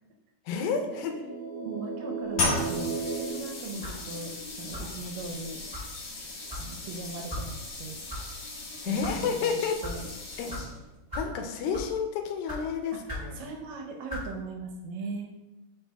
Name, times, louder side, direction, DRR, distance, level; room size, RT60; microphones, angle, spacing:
voice 1, 0.5-1.2 8.8-9.8 10.4-10.5 11.2-13.4, left 6 dB, 85° left, 5 dB, 2.5 m, -30 dB
sound 1, 0.6-4.5, right 5 dB, 60° right, 1.5 m, -36 dB
voice 2, 1.6-4.3 4.6-5.6 6.6-8.0 8.9-9.5 9.8-10.1 13.3-15.3, right 3 dB, 75° right, 2 dB, 2.3 m, -39 dB
sound 2, 2.3-11.0, left 3 dB, 60° left, 2.9 m, -36 dB
sound 3, 3.8-4.0 4.7-5.0 5.7-5.9 6.5-6.7 7.3-7.5 8.1-8.2 8.8-9.1 9.8-10.0 10.5-10.6 11.1-11.3 11.7-12.0 12.5-12.6 13.1-13.3 14.1-14.3, left 1 dB, 10° right, 1.0 m, -37 dB
9.0 x 4.8 x 2.3 m, 1.0 s
omnidirectional pair, 4.1 m